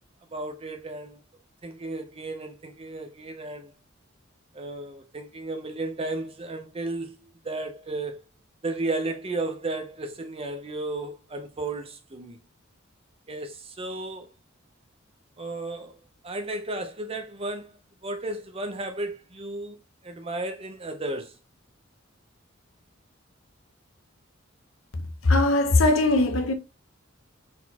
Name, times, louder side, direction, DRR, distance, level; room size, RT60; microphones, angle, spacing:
voice 1, 0.3-1.2 1.6-3.7 4.5-7.2 7.4-8.2 8.6-12.4 13.3-14.3 15.4-17.8 18.0-19.8 20.0-21.4, right 2 dB, 30° right, 0.6 m, -34 dB
voice 2, 25.2-26.5, left 2 dB, 85° left, 0.9 m, -20 dB
4.3 x 4.0 x 2.8 m
head